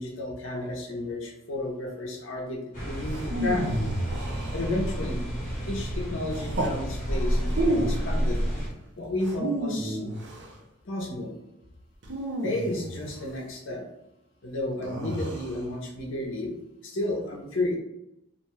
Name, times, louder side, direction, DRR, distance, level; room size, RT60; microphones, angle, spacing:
voice 1, 0.0-3.7 4.5-5.3 5.6-8.4 9.0-10.0 10.8-11.3 12.4-13.8 14.4-16.5 16.8-17.8, left 1 dB, 65° left, 0 dB, 0.6 m, -32 dB
sound 1, 2.7-8.7, equal, 40° left, 1.0 m, -30 dB
sound 2, 3.1-5.1 6.3-6.8 7.5-8.1 9.2-10.5 12.0-13.2 14.8-15.6, right 1 dB, 55° right, 0.5 m, -31 dB
2.5 x 2.2 x 3.0 m, 0.87 s
head